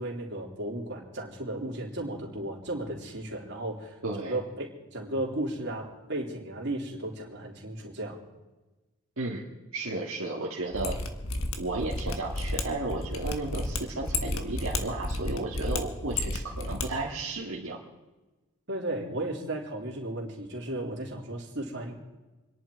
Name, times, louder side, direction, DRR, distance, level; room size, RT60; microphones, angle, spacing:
voice 1, 0.0-8.2 18.7-21.9, right 1 dB, 55° right, -1 dB, 3.6 m, -35 dB
voice 2, 4.0-4.4 9.2-9.4 9.7-11.0 11.6-17.8, right 2 dB, 70° right, -4 dB, 2.1 m, -33 dB
Mechanisms, 10.7-16.9 17.1-17.2, left 2 dB, 70° left, 1.6 m, -32 dB
28.0 x 11.0 x 4.7 m, 1.1 s
head